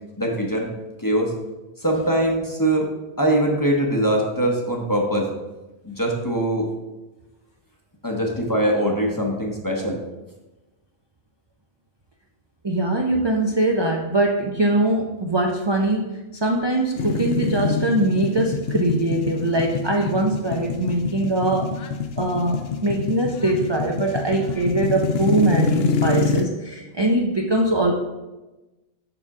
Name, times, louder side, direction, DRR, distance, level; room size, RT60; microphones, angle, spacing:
voice 1, 0.2-0.7 1.0-1.3 1.8-2.9 3.2-5.3 5.8-6.7 8.0-10.0 13.1-13.3, right 1 dB, 20° left, 0 dB, 0.8 m, -22 dB
voice 2, 12.6-21.7 22.2-27.9, right 2 dB, 35° right, 1 dB, 0.5 m, -22 dB
sound 1, 17.0-26.4, left 5 dB, 70° left, 0.8 m, -26 dB
6.9 x 6.0 x 3.6 m, 1.1 s
omnidirectional pair, 1.1 m